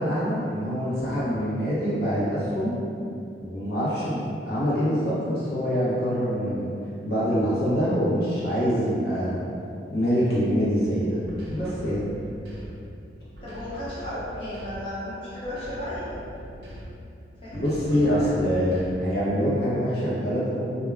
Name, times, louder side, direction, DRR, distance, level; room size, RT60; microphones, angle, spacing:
voice 1, 0.0-2.7 3.4-6.7 7.0-9.4 9.9-11.2 11.5-12.0 17.5-20.8, equal, 60° left, -9 dB, 0.7 m, -25 dB
sound 1, 11.2-12.9 13.3-15.1 15.4-17.1 17.5-19.2, equal, 65° right, 0.5 m, -41 dB
voice 2, 13.4-16.2 17.4-18.4, left 1 dB, 30° left, -11 dB, 0.7 m, -35 dB
2.3 x 2.2 x 3.2 m, 2.6 s
head